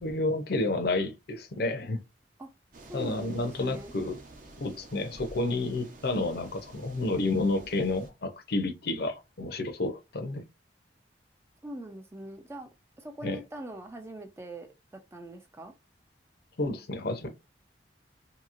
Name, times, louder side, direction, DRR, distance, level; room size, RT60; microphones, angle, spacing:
voice 1, 0.0-2.0 2.9-4.2 4.6-10.4 13.2-13.4 16.6-17.3, left 2 dB, 60° left, 0.6 m, -30 dB
sound 1, 2.7-8.1, right 2 dB, 50° right, 0.7 m, -50 dB
voice 2, 2.9-3.9 11.6-15.7, right 1 dB, 15° right, 0.4 m, -42 dB
2.9 x 2.7 x 2.5 m
head